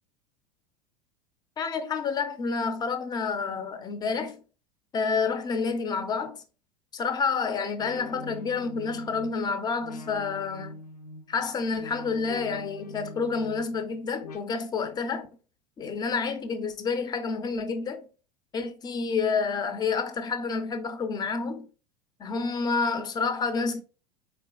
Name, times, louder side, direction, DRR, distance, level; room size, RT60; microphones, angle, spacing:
voice 1, 1.6-4.4 4.9-6.4 6.9-10.8 11.3-15.3 15.8-18.1 18.5-21.7 22.2-23.8, left 5 dB, 20° left, 0.5 m, -29 dB
sound 1, 7.8-14.4, left 3 dB, 75° left, 0.7 m, -43 dB
4.3 x 3.4 x 2.2 m
figure-of-eight pair, 80°, 20 cm